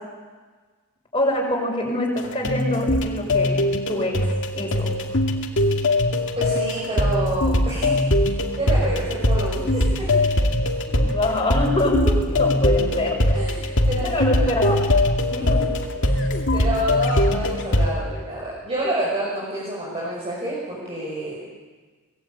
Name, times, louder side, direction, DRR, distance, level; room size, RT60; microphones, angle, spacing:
voice 1, 1.1-4.2 4.5-4.9 10.9-13.2 14.0-14.9 15.3-15.6, left 1 dB, 25° left, 0 dB, 6.7 m, -25 dB
sound 1, 2.2-17.9, left 1 dB, 55° left, 2.5 m, -21 dB
voice 2, 6.4-8.3 8.6-10.1 13.3-14.4 15.4-15.5 16.0-21.4, right 1 dB, 25° right, -5 dB, 6.3 m, -28 dB
24.0 x 19.5 x 9.1 m, 1.4 s
head